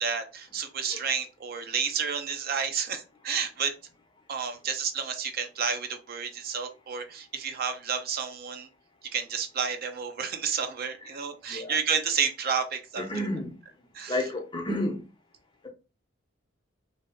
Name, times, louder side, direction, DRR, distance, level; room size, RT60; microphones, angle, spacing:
voice 1, 0.0-3.7 4.3-8.7 9.1-13.1 13.9-14.2, right 6 dB, 50° right, 0.3 m, -30 dB
voice 2, 13.0-13.5 14.1-15.0, left 1 dB, 25° left, 0.5 m, -30 dB
2.6 x 2.3 x 2.4 m
head